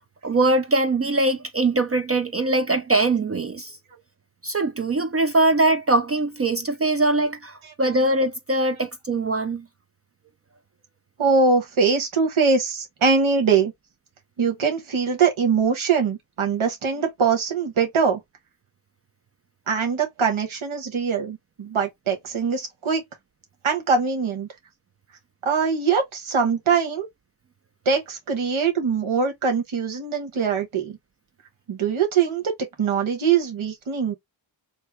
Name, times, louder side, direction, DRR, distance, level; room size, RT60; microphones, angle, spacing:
voice 1, 0.2-3.8 4.4-9.6, right 2 dB, 30° right, 0.4 m, -22 dB
voice 2, 11.2-13.7 14.4-18.2 19.7-23.0 23.6-24.5 25.4-27.1 27.8-31.0 31.7-32.4 32.8-34.1, right 5 dB, 90° right, 1.1 m, -22 dB
2.7 x 2.6 x 3.4 m
cardioid pair, 45°, 47 cm